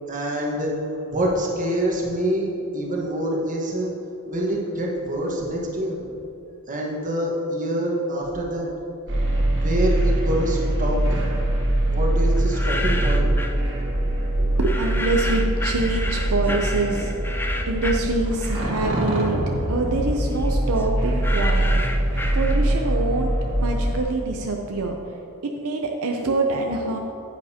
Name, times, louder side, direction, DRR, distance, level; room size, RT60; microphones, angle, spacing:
voice 1, 0.1-0.7 1.1-3.9 4.3-6.1 6.7-8.7 9.5-11.4 11.9-13.3, right 1 dB, 35° right, -2 dB, 1.4 m, -26 dB
sound 1, 9.1-24.0, right 1 dB, 55° right, 1.7 m, -23 dB
sound 2, 12.4-13.6 14.6-18.8 19.2-22.9, left 1 dB, 10° left, 0.4 m, -32 dB
voice 2, 14.4-19.4 19.7-21.7 22.3-23.3 23.6-25.0 25.6-27.0, right 3 dB, 75° right, 2 dB, 0.6 m, -25 dB
10.0 x 9.1 x 2.9 m, 2.8 s
head